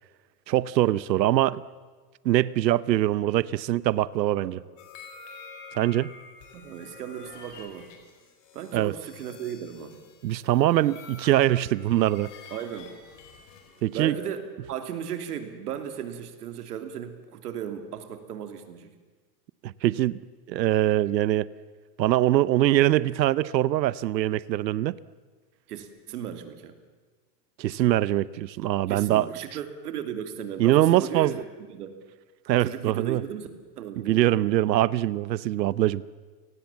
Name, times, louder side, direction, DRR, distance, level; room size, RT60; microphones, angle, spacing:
voice 1, 0.5-1.6 2.2-4.6 5.7-6.1 8.7-8.9 10.2-12.3 13.8-14.1 19.6-20.2 20.5-21.5 22.0-25.0 27.6-29.3 30.6-31.3 32.5-33.2 34.0-36.0, right 14 dB, 90° right, 19 dB, 0.9 m, -23 dB
sound 1, 4.8-14.3, left 4 dB, 45° left, 4.8 m, -48 dB
voice 2, 6.5-7.9 8.5-10.0 12.5-12.9 13.9-18.9 25.7-26.8 28.9-32.0 32.6-33.5 33.8-34.3, right 9 dB, 65° right, 8 dB, 3.1 m, -36 dB
30.0 x 19.0 x 7.3 m, 1.4 s
supercardioid pair, 175°, 50 cm